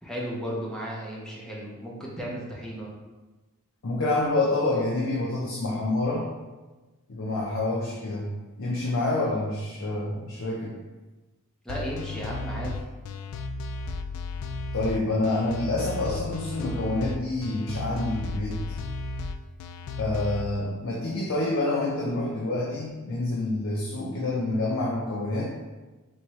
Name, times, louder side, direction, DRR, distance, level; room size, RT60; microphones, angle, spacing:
voice 1, 0.0-2.9 11.6-12.7, equal, 5° left, -5 dB, 0.9 m, -34 dB
voice 2, 3.8-6.3 7.1-8.3 8.6-10.8 14.7-18.8 20.0-25.5, left 2 dB, 65° left, -4 dB, 0.7 m, -27 dB
sound 1, 11.7-20.4, left 2 dB, 90° left, 0.3 m, -34 dB
4.6 x 3.5 x 3.1 m, 1.2 s
head